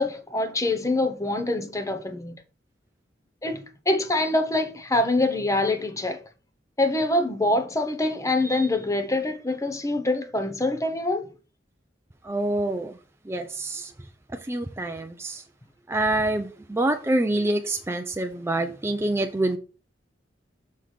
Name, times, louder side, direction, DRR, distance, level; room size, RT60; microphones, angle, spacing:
voice 1, 0.0-2.4 3.4-6.2 6.8-11.3, left 2 dB, 20° left, 0.9 m, -25 dB
voice 2, 12.2-13.0 13.2-13.9 14.3-15.4 15.9-19.6, right 1 dB, 15° right, 0.5 m, -26 dB
6.4 x 3.5 x 5.8 m
head